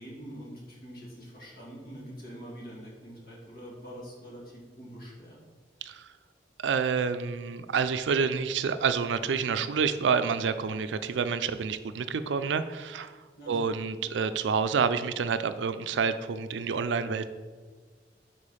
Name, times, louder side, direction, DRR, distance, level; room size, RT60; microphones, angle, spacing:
voice 1, 0.0-5.4 13.4-13.8, equal, 55° left, -4 dB, 1.9 m, -44 dB
voice 2, 5.8-6.1 6.6-13.2 13.5-17.3, right 5 dB, 90° right, 11 dB, 0.4 m, -28 dB
5.0 x 4.4 x 5.5 m, 1.4 s
head